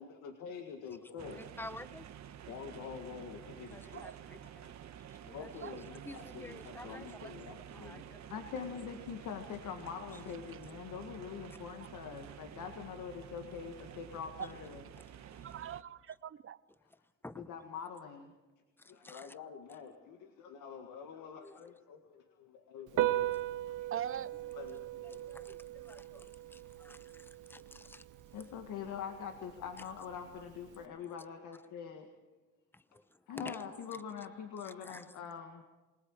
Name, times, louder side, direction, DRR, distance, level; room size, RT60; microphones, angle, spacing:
voice 1, 0.0-1.4 2.5-4.0 4.4-4.5 5.2-6.0 6.3-8.0 8.3-14.8 17.4-18.3 18.9-23.9 24.5-25.2 28.3-32.1 33.3-35.6, left 7 dB, 85° left, 1.9 m, -45 dB
voice 2, 1.0-2.1 3.4-4.6 5.1-8.2 8.8-8.9 15.3-15.5 17.2-17.5 18.8-19.3 21.4-21.6 23.1-23.5 24.7-28.0 30.9-31.0 32.7-33.6 33.9-34.0 34.6-35.1, left 2 dB, 5° left, 0.8 m, -52 dB
sound 1, 1.2-15.8, right 9 dB, 65° right, 1.3 m, -50 dB
voice 3, 6.9-7.3 14.4-14.5 15.2-16.6 23.9-24.4, right 9 dB, 45° right, 0.8 m, -42 dB
Piano, 22.9-30.9, right 14 dB, 85° right, 1.0 m, -39 dB
28.0 x 19.0 x 4.9 m
cardioid pair, 90°, 30 cm